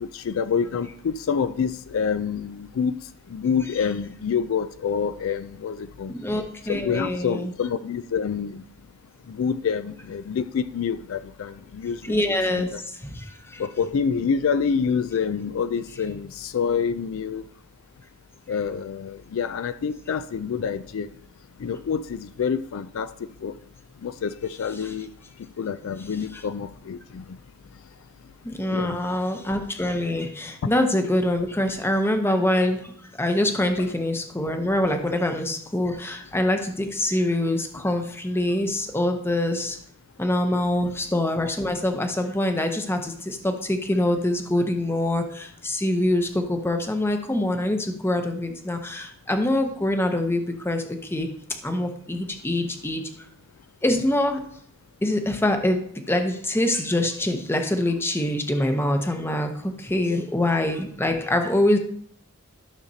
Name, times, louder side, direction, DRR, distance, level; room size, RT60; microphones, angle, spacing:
voice 1, 0.0-2.9 3.3-6.1 6.7-8.6 9.3-12.2 12.5-12.8 13.6-17.4 18.5-21.1 21.6-23.1 23.4-23.5 24.0-25.1 25.6-27.2 28.7-29.0 40.7-40.8 60.1-60.2, left 6 dB, 70° left, 13 dB, 0.4 m, -27 dB
voice 2, 6.1-7.5 12.0-13.6 26.3-26.4 28.4-32.9 33.2-39.8 40.2-51.3 51.6-53.0 53.8-54.4 55.0-55.8 56.1-61.8, left 1 dB, 10° left, 5 dB, 0.7 m, -24 dB
12.5 x 6.5 x 2.8 m, 0.65 s
head